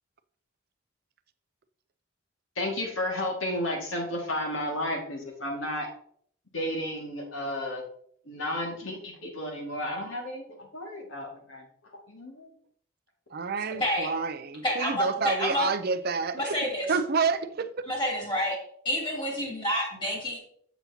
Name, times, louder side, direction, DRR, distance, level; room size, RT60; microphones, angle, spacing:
voice 1, 2.6-5.9 6.5-7.8 8.3-11.7 12.1-12.5, left 1 dB, 75° left, 2.0 m, -32 dB
voice 2, 13.3-16.6 16.9-17.7, right 5 dB, 50° right, 0.5 m, -28 dB
voice 3, 14.6-15.7 16.3-16.9 17.9-18.6 18.8-20.4, equal, 25° left, 3.0 m, -28 dB
7.3 x 7.0 x 2.8 m
head